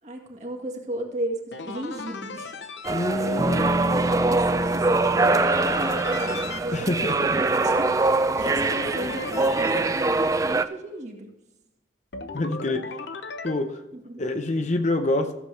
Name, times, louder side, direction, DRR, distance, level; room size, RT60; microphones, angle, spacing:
voice 1, 0.0-2.5 2.8-8.2 8.4-11.4 13.9-14.2, right 1 dB, 40° right, 2 dB, 1.8 m, -36 dB
sound 1, 1.5-2.9 5.2-6.6 8.4-9.8 12.1-13.5, left 3 dB, 70° left, 0.9 m, -35 dB
sound 2, 2.8-10.6, right 3 dB, 15° right, 0.4 m, -23 dB
voice 2, 2.9-3.7 6.7-7.4 8.4-8.5 12.3-12.8 13.4-13.8 14.2-15.3, left 2 dB, 40° left, 6 dB, 0.8 m, -26 dB
sound 3, 3.4-7.4, equal, 20° left, 1.2 m, -31 dB
14.5 x 7.4 x 3.4 m, 1.0 s
head